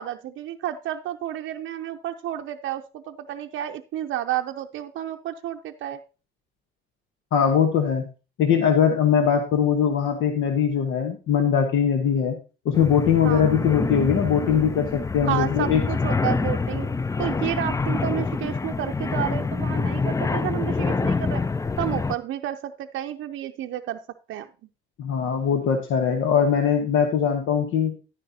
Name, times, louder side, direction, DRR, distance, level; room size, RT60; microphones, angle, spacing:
voice 1, 0.0-6.0 13.2-13.5 15.3-16.9 17.2-21.4 21.8-24.0 24.3-24.5, right 11 dB, 80° right, 5 dB, 0.5 m, -31 dB
voice 2, 7.3-8.1 8.4-12.4 12.6-15.8 25.0-27.9, left 7 dB, 85° left, 4 dB, 1.2 m, -21 dB
sound 1, 12.7-22.2, left 4 dB, 15° left, 0.4 m, -26 dB
11.0 x 10.0 x 2.8 m, 0.33 s
cardioid pair, 90°, 20 cm